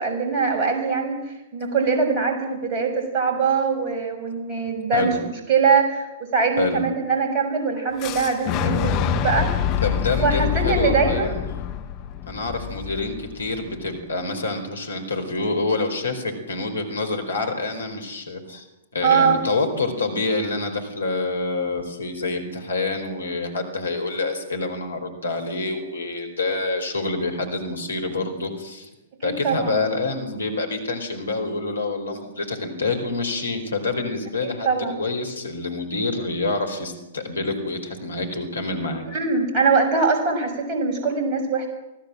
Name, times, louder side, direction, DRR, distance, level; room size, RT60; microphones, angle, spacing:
voice 1, 0.0-6.1 6.3-9.5 10.2-11.3 19.0-19.4 29.2-29.7 34.4-35.0 39.1-41.7, right 5 dB, 30° right, 2 dB, 6.7 m, -22 dB
Fire / Explosion, 8.0-13.9, left 9 dB, 35° left, 2.1 m, -26 dB
voice 2, 9.8-11.6 12.3-18.7 18.9-28.9 29.2-39.0, left 3 dB, 70° left, 5 dB, 4.4 m, -27 dB
25.0 x 16.5 x 7.7 m, 0.99 s
figure-of-eight pair, 105°, 0 cm